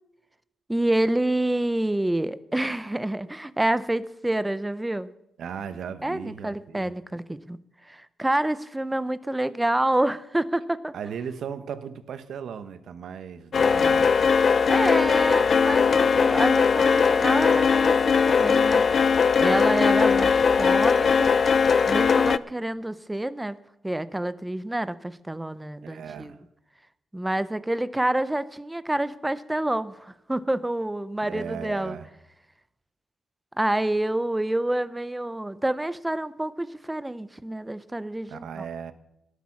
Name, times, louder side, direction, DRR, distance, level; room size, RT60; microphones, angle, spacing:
voice 1, 0.7-5.1 6.0-7.6 7.9-10.9 14.7-18.9 19.4-21.4 21.9-23.6 23.8-26.3 27.1-32.0 33.6-38.7, right 1 dB, 10° right, 16 dB, 0.6 m, -27 dB
voice 2, 5.4-6.9 10.9-14.1 25.8-26.4 31.2-32.0 38.3-38.9, right 7 dB, 70° right, 12 dB, 1.0 m, -36 dB
sound 1, 13.5-22.4, left 6 dB, 45° left, 0.4 m, -20 dB
18.0 x 8.4 x 5.9 m, 0.85 s
cardioid pair, 130°, 0 cm